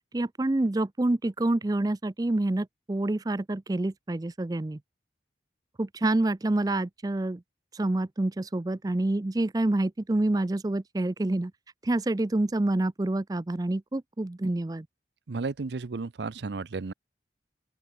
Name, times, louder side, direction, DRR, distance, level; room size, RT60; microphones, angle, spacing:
voice 1, 0.1-4.8 5.8-7.4 7.7-11.5 11.8-14.9, right 2 dB, 20° right, 0.4 m, -27 dB
voice 2, 15.3-16.9, right 3 dB, 80° right, 0.6 m, -33 dB
open air
head